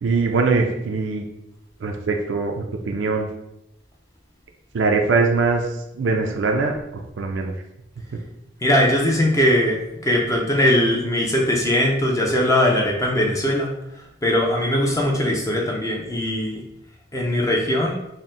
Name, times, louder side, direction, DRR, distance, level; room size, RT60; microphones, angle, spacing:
voice 1, 0.0-1.3 1.8-3.3 4.7-5.7 5.9-6.8 7.2-7.5, right 4 dB, 80° right, 3 dB, 0.4 m, -21 dB
voice 2, 8.6-16.6 17.1-18.0, left 1 dB, 15° left, -1 dB, 0.4 m, -20 dB
4.2 x 2.1 x 3.7 m, 0.85 s
head